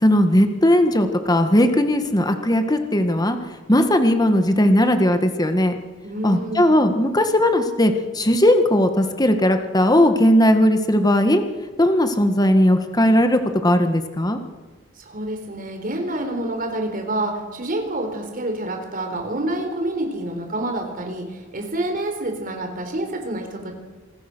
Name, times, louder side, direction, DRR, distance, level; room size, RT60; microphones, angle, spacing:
voice 1, 0.0-3.4 3.7-5.7 6.2-11.4 11.8-14.4, left 1 dB, 20° left, 7 dB, 1.7 m, -18 dB
voice 2, 6.0-6.7 15.0-23.7, right 1 dB, 45° right, 4 dB, 4.2 m, -28 dB
27.0 x 20.0 x 6.3 m, 1.3 s
head